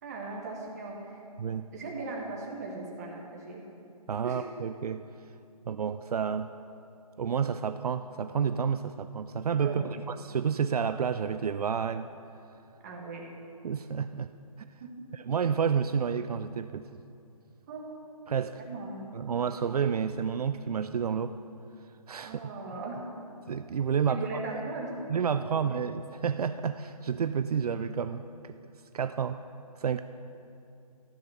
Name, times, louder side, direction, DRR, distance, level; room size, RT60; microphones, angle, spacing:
voice 1, 0.0-1.2 1.7-3.7 4.2-4.4 9.6-9.9 12.8-13.3 14.8-14.9 17.7-17.9 18.5-19.0 22.2-23.0 24.1-25.0 25.4-25.8, right 3 dB, 25° right, -1 dB, 1.6 m, -38 dB
voice 2, 4.1-5.0 5.7-6.5 7.2-12.1 13.6-14.3 14.6-14.7 15.1-16.9 18.3-18.6 19.1-21.4 22.1-22.5 23.5-24.2 25.1-28.6 28.9-29.4 29.7-30.0, right 7 dB, 75° right, 11 dB, 0.4 m, -30 dB
14.0 x 7.3 x 5.7 m, 2.6 s
hypercardioid pair, 165°, 20 cm